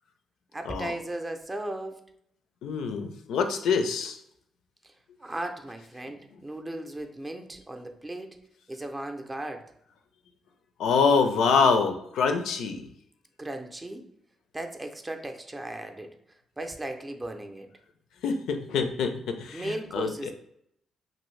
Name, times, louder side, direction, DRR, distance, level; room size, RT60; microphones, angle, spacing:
voice 1, 0.5-2.0 5.2-8.3 8.7-9.6 13.4-14.0 14.5-16.1 16.6-17.7 19.5-20.3, right 1 dB, 20° right, 5 dB, 0.5 m, -36 dB
voice 2, 2.6-4.2 10.8-12.9 18.2-20.1, left 5 dB, 80° left, 6 dB, 0.4 m, -25 dB
2.6 x 2.6 x 3.1 m, 0.72 s
cardioid pair, 75°, 0 cm